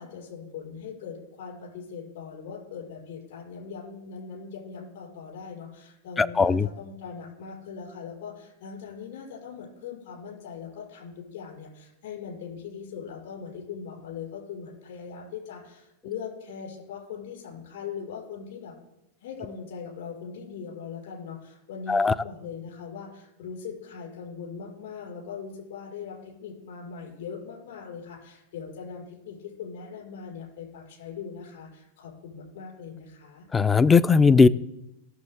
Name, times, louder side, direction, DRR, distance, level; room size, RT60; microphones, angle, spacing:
voice 1, 0.0-18.7 19.2-33.5, left 6 dB, 55° left, -3 dB, 5.0 m, -40 dB
voice 2, 6.2-6.7 21.9-22.1 33.5-34.5, left 4 dB, 15° left, 17 dB, 0.4 m, -18 dB
17.5 x 7.1 x 3.7 m, 0.87 s
figure-of-eight pair, 90°, 0 cm